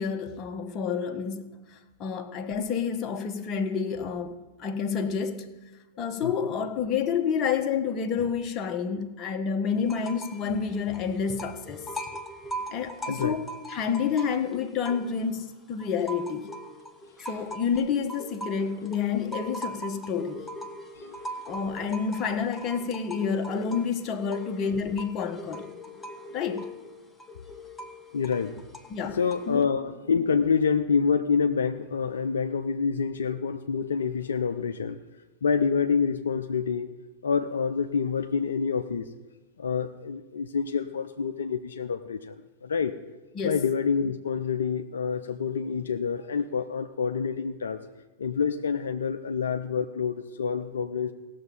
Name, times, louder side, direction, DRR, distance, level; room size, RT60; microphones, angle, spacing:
voice 1, 0.0-5.6 6.0-11.9 12.7-16.5 17.3-20.5 21.5-25.7 26.3-26.7 28.9-29.2 29.5-29.7 43.3-43.6, left 6 dB, 35° left, 1.1 m, -29 dB
sound 1, 9.8-10.5 10.7-15.4 15.8-29.6, right 1 dB, 10° left, 1.1 m, -41 dB
voice 2, 13.1-13.4 20.9-21.2 28.1-28.5 29.1-35.0 35.4-37.0 37.2-39.1 39.6-42.4 42.6-42.9 43.4-47.8 48.2-51.1, left 6 dB, 70° left, 0.5 m, -27 dB
17.0 x 6.9 x 5.4 m
figure-of-eight pair, 95°, 0 cm